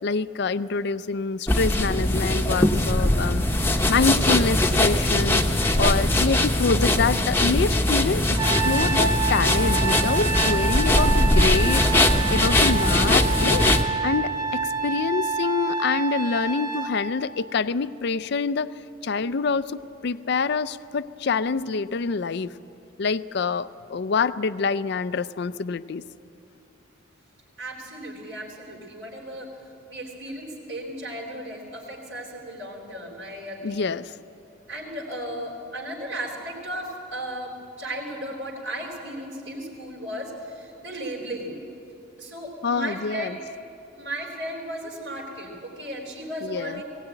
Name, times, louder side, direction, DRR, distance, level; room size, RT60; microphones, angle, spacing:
voice 1, 0.0-3.4 3.7-5.4 5.8-8.4 8.7-13.8 14.0-18.7 19.0-22.5 23.0-26.0 33.6-34.1 42.6-43.4 46.4-46.8, left 4 dB, 55° left, 15 dB, 0.5 m, -26 dB
sound 1, 1.5-13.8, left 1 dB, 10° left, 0.9 m, -21 dB
Trumpet, 8.4-16.9, right 5 dB, 20° right, 1.2 m, -27 dB
voice 2, 27.6-29.6 29.9-33.9 34.7-41.6 42.2-43.4 43.9-46.8, right 1 dB, 65° right, -3 dB, 3.6 m, -35 dB
19.0 x 17.5 x 9.0 m, 2.7 s
head